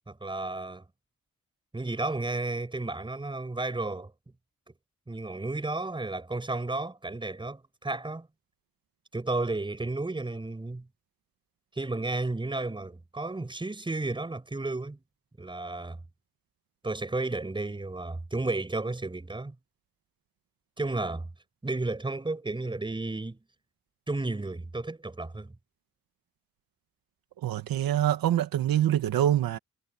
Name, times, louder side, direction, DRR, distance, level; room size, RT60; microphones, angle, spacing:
voice 1, 0.1-0.9 1.7-4.1 5.1-8.3 9.1-10.9 11.8-15.0 15.4-16.0 16.8-19.6 20.8-21.3 21.6-23.4 24.1-25.5, right 2 dB, 15° right, 5.8 m, -32 dB
voice 2, 27.4-29.6, right 11 dB, 85° right, 1.7 m, -25 dB
wide cardioid pair, 150°, 34 cm